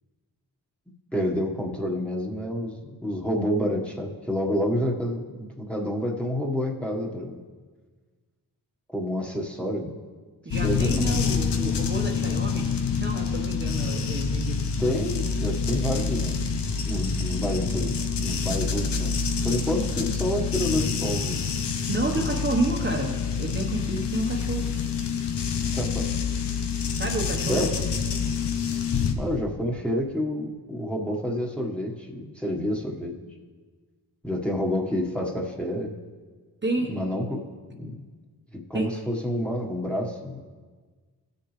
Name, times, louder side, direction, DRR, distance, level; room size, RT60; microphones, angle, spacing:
voice 1, 1.1-7.4 8.9-10.0 10.6-11.2 14.8-16.4 16.9-21.5 25.7-26.1 27.5-27.9 29.1-33.2 34.2-35.9 36.8-37.4 37.8-37.9 38.5-40.4, equal, 5° left, -1 dB, 1.5 m, -29 dB
voice 2, 10.4-12.7 13.0-15.0 21.9-24.7 27.0-28.1 36.6-36.9 38.7-38.9, right 2 dB, 25° right, 0 dB, 1.2 m, -30 dB
sound 1, 10.5-29.1, left 6 dB, 75° left, 0.9 m, -27 dB
16.5 x 6.8 x 3.3 m, 1.5 s
cardioid pair, 50°, 41 cm